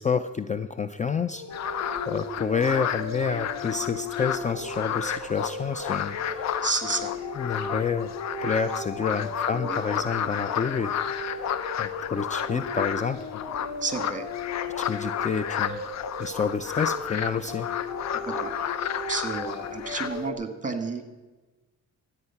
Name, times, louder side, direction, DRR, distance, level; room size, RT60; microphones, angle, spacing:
voice 1, 0.0-6.5 7.4-8.1 8.4-11.3 11.8-13.2 14.8-15.8 16.2-17.7, left 5 dB, 25° left, 12 dB, 0.5 m, -29 dB
sound 1, 1.3-20.3, left 3 dB, 85° left, 4.2 m, -37 dB
sound 2, 1.5-20.3, left 9 dB, 60° left, 0.7 m, -32 dB
voice 2, 6.6-7.1 9.5-9.8 13.8-14.3 18.1-18.5 19.1-21.1, right 4 dB, 25° right, 7 dB, 1.9 m, -31 dB
13.0 x 9.0 x 5.8 m, 1.2 s
cardioid pair, 90°, 30 cm